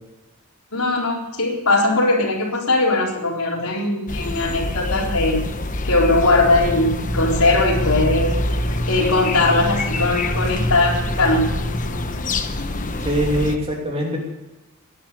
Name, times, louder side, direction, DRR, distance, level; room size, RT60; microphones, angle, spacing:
voice 1, 0.7-5.4 5.8-8.4 8.9-11.5, left 2 dB, 75° left, -1 dB, 4.0 m, -19 dB
sound 1, 4.1-13.6, left 2 dB, 35° left, 1.1 m, -26 dB
sound 2, 6.1-12.1, equal, 55° right, 3.9 m, -29 dB
voice 2, 13.0-14.2, equal, 25° right, 0 dB, 3.0 m, -22 dB
17.5 x 11.0 x 6.8 m, 1.1 s
head